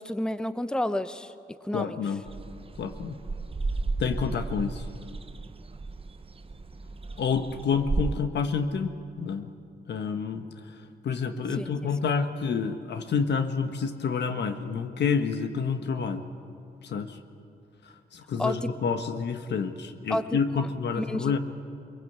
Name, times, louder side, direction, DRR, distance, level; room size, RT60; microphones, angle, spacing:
voice 1, 0.0-1.3 1.6-2.0 11.6-11.7 18.4-18.7 20.1-20.7 21.0-21.4, left 1 dB, 5° left, 12 dB, 0.8 m, -30 dB
voice 2, 1.7-2.2 2.8-3.2 4.0-4.8 7.2-9.5 9.9-10.5 11.0-16.2 16.8-17.2 18.1-21.4, left 5 dB, 80° left, 8 dB, 1.4 m, -28 dB
sound 1, 2.3-8.1, right 3 dB, 35° right, 0.9 m, -34 dB
23.0 x 22.0 x 8.1 m, 2.5 s
cardioid pair, 85°, 17 cm